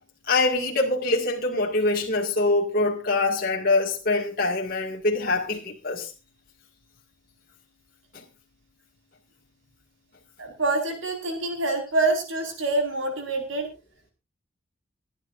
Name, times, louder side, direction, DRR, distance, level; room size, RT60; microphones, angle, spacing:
voice 1, 0.3-6.1, left 2 dB, 45° left, 2.0 m, -24 dB
voice 2, 10.4-13.7, right 2 dB, 70° right, 4.8 m, -26 dB
24.0 x 11.0 x 2.5 m
head